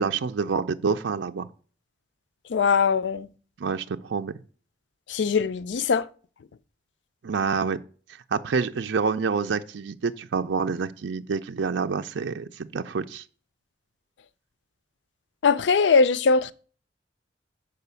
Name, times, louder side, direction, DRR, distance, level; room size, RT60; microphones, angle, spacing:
voice 1, 0.0-1.5 3.6-4.3 7.2-7.8 8.3-13.2, right 5 dB, 85° right, 0.5 m, -27 dB
voice 2, 2.5-3.3 5.1-6.0 15.4-16.5, left 5 dB, 75° left, 0.4 m, -21 dB
6.7 x 5.0 x 6.8 m
head